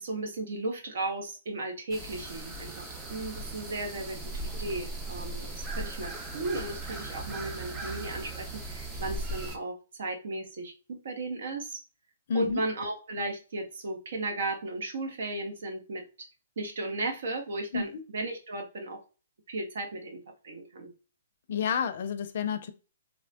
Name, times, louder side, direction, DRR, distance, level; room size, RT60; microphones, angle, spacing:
voice 1, 0.0-11.8 12.3-16.3 16.6-19.0 19.5-20.9, right 2 dB, 70° right, 4 dB, 0.9 m, -35 dB
sound 1, 1.9-9.6, right 2 dB, 15° right, 0.5 m, -38 dB
voice 2, 12.3-12.6 17.7-17.9 21.5-22.7, left 6 dB, 60° left, 11 dB, 0.4 m, -29 dB
3.1 x 2.1 x 2.4 m, 0.34 s
hypercardioid pair, 140°, 0 cm